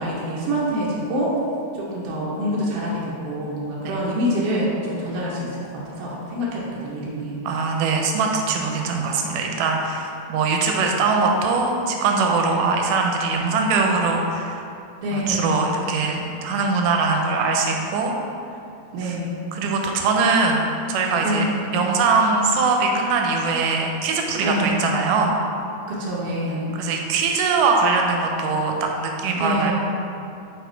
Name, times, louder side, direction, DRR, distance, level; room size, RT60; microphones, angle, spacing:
voice 1, 0.0-1.3 1.7-7.4 15.0-15.7 18.9-19.4 21.2-21.5 24.4-24.8 25.9-26.8 29.4-29.7, equal, 75° right, -5 dB, 1.4 m, -26 dB
voice 2, 7.5-14.6 15.1-18.2 19.0-19.2 19.5-20.6 20.9-21.4 21.7-25.4 26.7-29.7, right 4 dB, 90° right, 1 dB, 2.2 m, -22 dB
5.1 x 4.2 x 4.4 m, 2.6 s
omnidirectional pair, 3.7 m